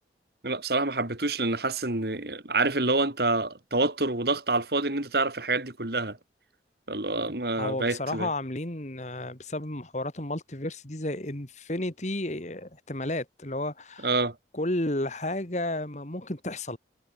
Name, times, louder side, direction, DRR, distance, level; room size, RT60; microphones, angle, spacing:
voice 1, 0.4-6.2 6.9-8.3 14.0-14.3, right 2 dB, 60° right, 2.5 m, -27 dB
voice 2, 7.6-14.1 14.5-16.8, left 1 dB, 40° left, 2.3 m, -32 dB
head